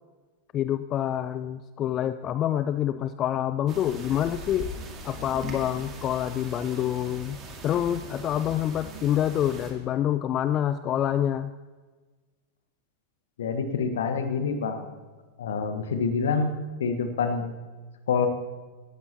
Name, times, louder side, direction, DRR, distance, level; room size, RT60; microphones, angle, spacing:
voice 1, 0.5-4.7 5.0-7.4 7.6-11.5, left 11 dB, 30° left, 12 dB, 0.4 m, -27 dB
sound 1, 3.7-9.7, right 2 dB, 30° right, 2.4 m, -41 dB
voice 2, 13.4-14.9 15.4-16.5 16.8-17.5 18.1-18.3, left 5 dB, 65° left, 7 dB, 1.4 m, -26 dB
18.0 x 13.5 x 3.0 m, 1.3 s
figure-of-eight pair, 90°, 0 cm